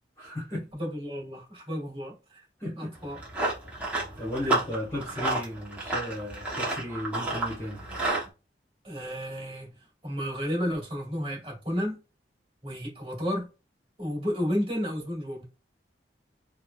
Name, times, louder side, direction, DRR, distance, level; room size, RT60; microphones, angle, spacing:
voice 1, 0.2-0.7 2.6-2.9 4.2-7.8, left 1 dB, 15° left, 1.0 m, -35 dB
voice 2, 0.7-2.4 2.7-3.2 8.8-9.7 10.0-12.0 12.6-13.5 14.0-15.4, equal, 30° right, 1.6 m, -32 dB
Run, 2.9-8.3, right 2 dB, 10° right, 0.8 m, -31 dB
3.1 x 2.1 x 2.2 m
head